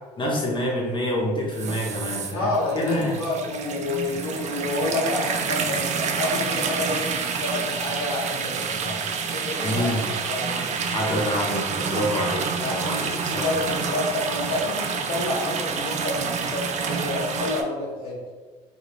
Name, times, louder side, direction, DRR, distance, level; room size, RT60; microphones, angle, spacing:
voice 1, 0.2-2.5 2.7-3.2 9.6-10.1 10.9-13.5, equal, 25° left, -2 dB, 1.0 m, -27 dB
sound 1, 1.5-17.6, right 5 dB, 40° right, 0.4 m, -28 dB
voice 2, 2.3-9.9 10.3-10.9 12.6-18.2, left 2 dB, 70° left, -8 dB, 0.8 m, -29 dB
2.4 x 2.3 x 3.2 m, 1.4 s
hypercardioid pair, 60°, 19 cm